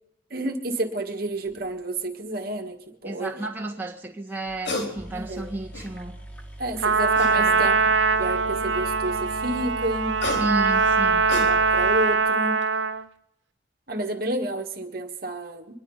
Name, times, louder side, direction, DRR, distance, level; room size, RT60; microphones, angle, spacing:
voice 1, 0.3-3.5 4.9-5.5 6.6-7.8 8.2-10.2 11.3-12.6 13.9-15.8, right 1 dB, 50° right, 4 dB, 1.6 m, -30 dB
sound 1, 1.5-1.7 4.4-4.9 5.3-6.1 7.1-7.8 9.9-11.9 12.4-12.6, left 2 dB, 70° left, 3.7 m, -33 dB
voice 2, 3.0-6.2 7.4-7.8 10.3-11.3, right 2 dB, 10° right, 0 dB, 1.6 m, -32 dB
sound 2, 4.9-12.8, right 1 dB, 5° left, 1.7 m, -41 dB
Trumpet, 6.8-13.0, right 4 dB, 75° right, 1.1 m, -22 dB
24.0 x 11.0 x 5.5 m, 0.76 s
head